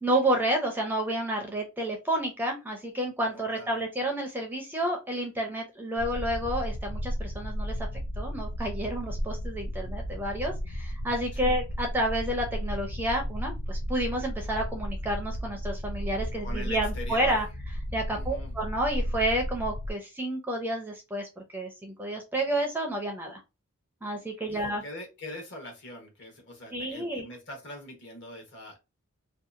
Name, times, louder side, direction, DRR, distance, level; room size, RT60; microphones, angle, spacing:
voice 1, 0.0-7.9 8.2-17.5 17.9-23.4 24.0-24.8 26.7-27.3, right 1 dB, 10° right, 0.4 m, -30 dB
voice 2, 3.2-3.8 11.4-11.6 16.4-17.4 18.1-18.5 24.5-28.8, left 1 dB, 55° left, 1.0 m, -42 dB
sound 1, 6.0-19.9, equal, 80° left, 0.5 m, -34 dB
2.8 x 2.3 x 2.5 m
head